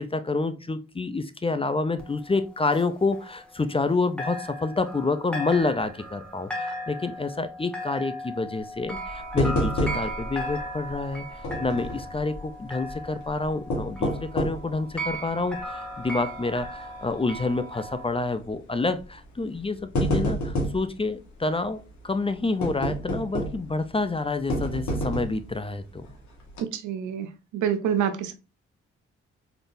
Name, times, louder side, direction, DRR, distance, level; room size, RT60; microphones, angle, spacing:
voice 1, 0.0-26.1, left 3 dB, 20° left, 11 dB, 0.5 m, -28 dB
sound 1, 2.0-3.9 4.2-18.1, equal, 5° left, 1.3 m, -37 dB
sound 2, 9.4-10.3 10.6-10.7 11.4-12.1 13.5-14.7 15.3-15.4 16.0-16.3 16.6-16.7 17.8-18.1 19.0-19.2 19.6-20.9 22.6-23.7 24.5-25.5 26.0-26.1 26.5-26.6, equal, 70° left, 1.5 m, -28 dB
voice 2, 26.7-27.3 27.5-28.3, right 8 dB, 75° right, 9 dB, 0.6 m, -26 dB
3.9 x 3.5 x 2.6 m, 0.31 s
supercardioid pair, 50°, 30 cm